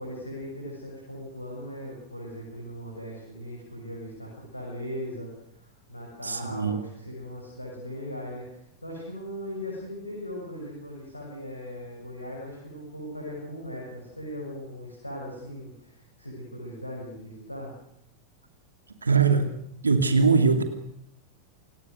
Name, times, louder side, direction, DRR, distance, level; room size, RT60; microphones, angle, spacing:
voice 1, 0.0-17.7, equal, 85° left, -2 dB, 6.7 m, -39 dB
voice 2, 6.2-6.8 19.0-19.5 19.8-20.6, right 5 dB, 75° right, 7 dB, 2.7 m, -21 dB
28.0 x 18.0 x 6.7 m, 0.74 s
figure-of-eight pair, 90°, 0 cm